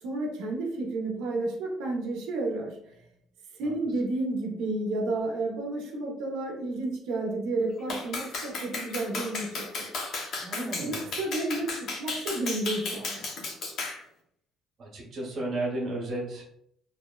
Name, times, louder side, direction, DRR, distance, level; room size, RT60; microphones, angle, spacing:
voice 1, 0.0-3.0 3.5-9.9 10.5-13.4, right 2 dB, 85° right, -1 dB, 0.7 m, -31 dB
Clapping, 7.9-14.0, left 3 dB, 55° left, 0.6 m, -34 dB
voice 2, 10.4-11.2 14.8-16.4, right 1 dB, 40° right, -3 dB, 0.9 m, -33 dB
3.0 x 2.0 x 2.2 m, 0.70 s
cardioid pair, 145°, 0 cm